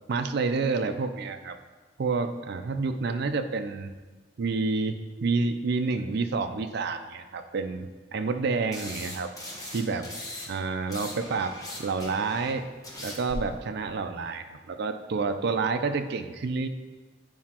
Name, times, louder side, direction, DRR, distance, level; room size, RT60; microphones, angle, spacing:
voice 1, 0.1-1.6 2.0-3.9 4.4-9.3 9.7-10.1 10.5-11.5 11.8-12.7 13.0-16.7, right 4 dB, 60° right, 7 dB, 0.4 m, -29 dB
sound 1, 8.7-10.5 10.7-13.4, left 1 dB, 20° left, 1.0 m, -40 dB
9.4 x 4.7 x 2.9 m, 1.3 s
head